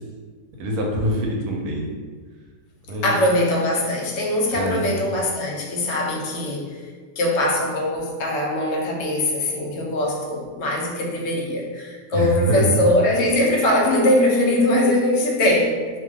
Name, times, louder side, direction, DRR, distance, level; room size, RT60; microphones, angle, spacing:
voice 1, 0.6-1.9 2.9-3.1 4.5-4.9 12.1-12.7, equal, 85° right, 0 dB, 1.1 m, -24 dB
voice 2, 3.0-6.8 7.2-15.8, left 1 dB, 70° left, -1 dB, 0.9 m, -21 dB
2.7 x 2.2 x 3.3 m, 1.5 s
omnidirectional pair, 1.5 m